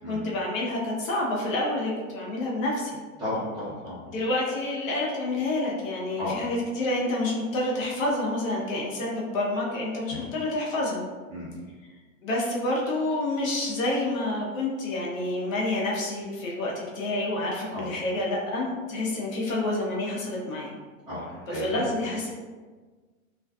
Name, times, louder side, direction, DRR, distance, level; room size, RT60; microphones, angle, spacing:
voice 1, 0.0-3.0 4.1-11.0 12.2-20.7 21.5-22.3, left 2 dB, 70° left, -3 dB, 0.8 m, -28 dB
voice 2, 3.2-4.0 6.2-6.3 10.1-10.3 11.3-11.5 17.7-17.8 21.1-21.9, left 1 dB, 10° right, -13 dB, 0.9 m, -33 dB
2.5 x 2.3 x 2.3 m, 1.4 s
supercardioid pair, 160°, 41 cm